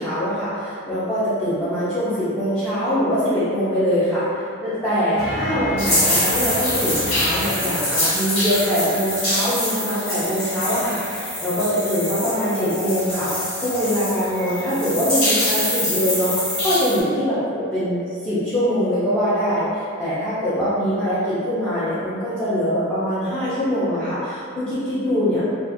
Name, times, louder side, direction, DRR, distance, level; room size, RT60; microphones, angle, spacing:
voice 1, 0.0-16.3 16.6-25.4, equal, 5° left, -15 dB, 0.6 m, -23 dB
sound 1, 5.1-8.3, left 1 dB, 35° left, 0.9 m, -30 dB
sound 2, 5.8-17.0, left 1 dB, 90° left, 1.4 m, -24 dB
2.5 x 2.4 x 2.6 m, 2.4 s
head